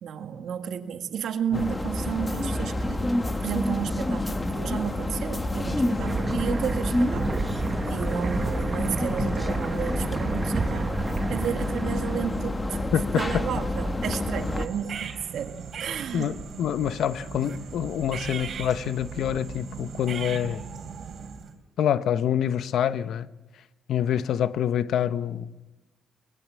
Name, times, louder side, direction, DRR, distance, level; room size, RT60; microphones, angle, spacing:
voice 1, 0.0-3.1 3.4-7.3 7.9-10.9 11.3-12.8 13.2-16.4, right 8 dB, 70° right, 2.0 m, -32 dB
sound 1, 1.5-14.7, left 1 dB, 15° left, 1.6 m, -28 dB
sound 2, 6.0-12.4, right 5 dB, 40° right, 0.9 m, -31 dB
voice 2, 12.9-13.4 16.1-20.6 21.8-23.3 23.9-25.5, left 9 dB, 70° left, 1.0 m, -26 dB
sound 3, 14.3-21.6, right 6 dB, 55° right, 3.5 m, -38 dB
23.0 x 20.0 x 7.5 m
cardioid pair, 90°, 0 cm